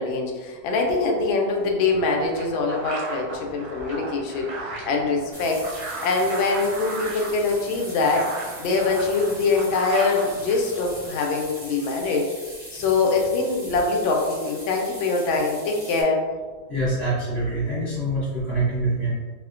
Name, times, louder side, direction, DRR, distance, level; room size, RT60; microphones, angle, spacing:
voice 1, 0.0-4.5 4.8-5.6 6.0-8.3 8.6-12.3 12.7-16.3, left 3 dB, 80° left, 1 dB, 1.3 m, -23 dB
sound 1, 1.8-11.1, right 2 dB, 85° right, 1.5 m, -36 dB
sound 2, 5.3-16.0, equal, 20° right, 0.6 m, -41 dB
voice 2, 16.7-19.1, right 2 dB, 45° left, -10 dB, 1.1 m, -25 dB
4.2 x 2.1 x 2.4 m, 1.4 s
omnidirectional pair, 2.2 m